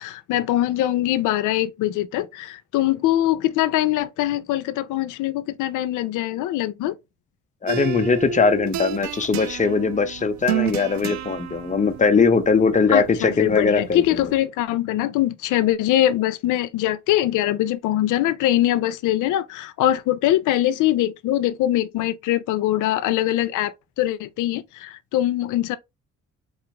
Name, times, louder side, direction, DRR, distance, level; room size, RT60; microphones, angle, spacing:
voice 1, 0.0-7.0 12.9-25.8, left 13 dB, 85° left, 0.5 m, -22 dB
voice 2, 7.6-14.3, left 4 dB, 25° left, 0.7 m, -20 dB
sound 1, 7.7-14.4, right 8 dB, 65° right, 0.5 m, -31 dB
3.8 x 2.4 x 2.8 m
cardioid pair, 90°, 30 cm